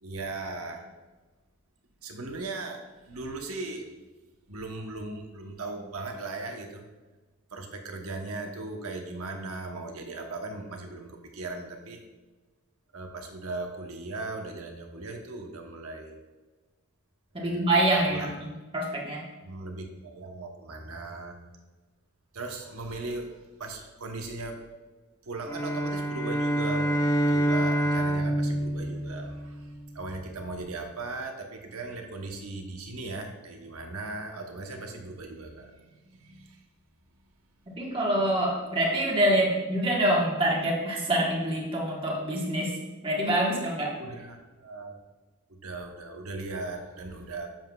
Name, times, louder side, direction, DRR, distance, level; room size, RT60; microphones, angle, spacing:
voice 1, 0.0-0.9 2.0-3.9 4.5-6.9 7.5-12.0 12.9-16.1 17.4-18.3 19.4-21.4 22.3-24.6 25.2-26.9 27.3-36.7 44.0-45.0 45.5-47.5, right 3 dB, 85° right, 3 dB, 1.0 m, -38 dB
voice 2, 17.3-19.2 37.8-42.8 43.0-44.0, right 1 dB, 25° right, -3 dB, 1.4 m, -26 dB
sound 1, 25.5-29.9, right 1 dB, 15° left, 0.5 m, -27 dB
7.6 x 7.2 x 2.3 m, 1.2 s
head